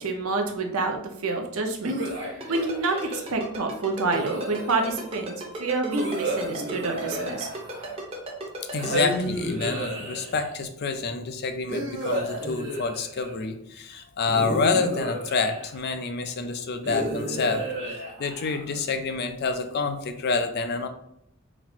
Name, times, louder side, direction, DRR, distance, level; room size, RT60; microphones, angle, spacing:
voice 1, 0.0-2.0 2.5-7.5, right 3 dB, 75° right, 3 dB, 0.7 m, -28 dB
sound 1, 1.8-3.3 4.1-5.0 5.9-8.1 8.7-10.6 11.7-13.4 14.3-15.9 16.8-18.8, right 1 dB, 55° right, 1.4 m, -32 dB
Ringtone, 2.4-9.2, right 1 dB, 25° right, 0.9 m, -35 dB
voice 2, 8.7-17.7 18.2-20.9, left 4 dB, 45° left, 8 dB, 0.4 m, -28 dB
4.1 x 2.0 x 4.3 m, 0.76 s
head